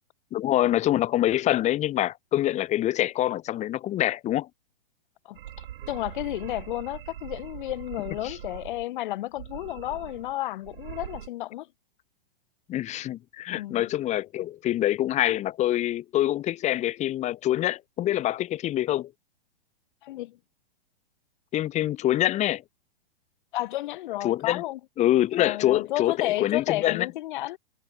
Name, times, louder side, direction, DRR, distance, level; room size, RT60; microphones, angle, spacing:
voice 1, 0.3-4.5 8.2-8.4 12.7-19.1 21.5-22.6 24.2-24.6 25.0-27.1, left 13 dB, 20° left, 2.2 m, -25 dB
sound 1, 5.3-8.9 9.3-10.4 10.6-11.3, right 12 dB, 65° right, 4.8 m, -42 dB
voice 2, 5.9-11.7 13.5-13.9 20.0-20.4 23.5-24.8 25.4-27.6, left 16 dB, 55° left, 7.6 m, -32 dB
hypercardioid pair, 145°, 31 cm